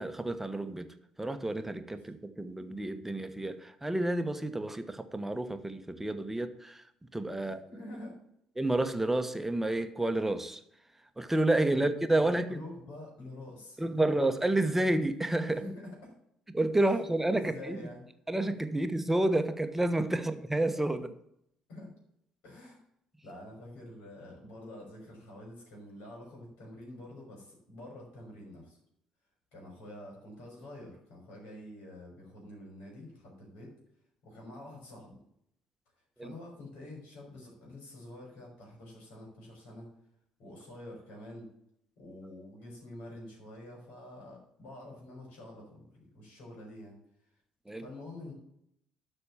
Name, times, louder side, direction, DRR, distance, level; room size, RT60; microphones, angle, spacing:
voice 1, 0.0-6.8 7.1-7.6 8.6-10.6 11.2-12.6 13.8-15.6 16.5-17.8 18.3-21.1 36.2-36.3 47.7-47.8, right 1 dB, 10° right, 9 dB, 1.1 m, -30 dB
voice 2, 7.4-8.2 11.7-13.8 14.0-14.1 15.5-16.1 16.9-17.0 17.3-18.1 20.1-20.3 21.7-21.9 22.4-22.8 23.2-28.8 29.5-33.7 34.2-35.2 36.2-39.9 40.4-41.5 42.0-47.0 47.8-48.3, left 1 dB, 65° left, -1 dB, 3.7 m, -47 dB
12.5 x 4.5 x 7.2 m, 0.74 s
figure-of-eight pair, 50°, 3 cm